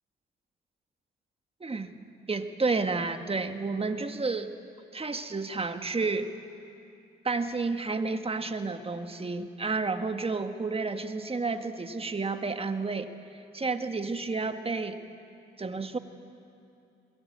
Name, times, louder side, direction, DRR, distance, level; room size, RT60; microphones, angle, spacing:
voice 1, 1.6-1.9 2.3-4.5 4.9-6.3 7.2-13.1 13.5-15.0 15.6-16.0, right 3 dB, 25° right, 8 dB, 1.5 m, -31 dB
22.0 x 18.0 x 8.7 m, 2.6 s
supercardioid pair, 60°, 21 cm